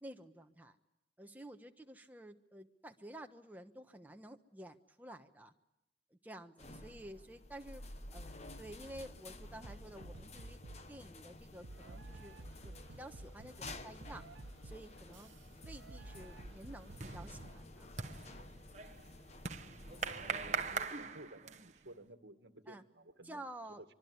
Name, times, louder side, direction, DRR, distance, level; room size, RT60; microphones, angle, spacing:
voice 1, 0.0-0.8 1.2-5.5 6.1-7.9 8.1-10.6 10.9-14.2 14.6-15.3 15.6-17.9 22.7-22.8 23.2-23.8, right 1 dB, 10° right, 5 dB, 1.2 m, -51 dB
sound 1, 6.6-20.8, left 2 dB, 35° left, 1.2 m, -52 dB
sound 2, 9.6-10.9 11.6-17.6, right 2 dB, 90° right, 1.0 m, -52 dB
sound 3, 15.4-15.7 16.1-21.9, right 5 dB, 40° right, 1.1 m, -42 dB
voice 2, 19.8-23.5, right 1 dB, 65° right, 9 dB, 1.8 m, -55 dB
25.5 x 23.5 x 9.6 m, 0.95 s
head